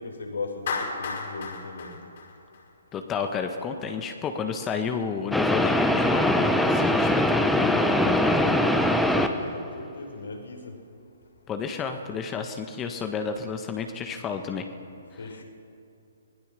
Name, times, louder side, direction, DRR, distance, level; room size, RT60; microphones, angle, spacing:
voice 1, 0.0-1.9 9.0-10.7 15.2-15.4, left 3 dB, 70° left, 3 dB, 5.2 m, -37 dB
Clapping, 0.7-3.0, left 5 dB, 55° left, 5.8 m, -33 dB
voice 2, 2.9-8.6 11.5-14.7, left 6 dB, 20° left, 6 dB, 1.6 m, -31 dB
sound 1, 5.3-9.5, left 1 dB, ahead, 1.3 m, -22 dB
26.0 x 21.0 x 6.9 m, 2.6 s
figure-of-eight pair, 130°, 0 cm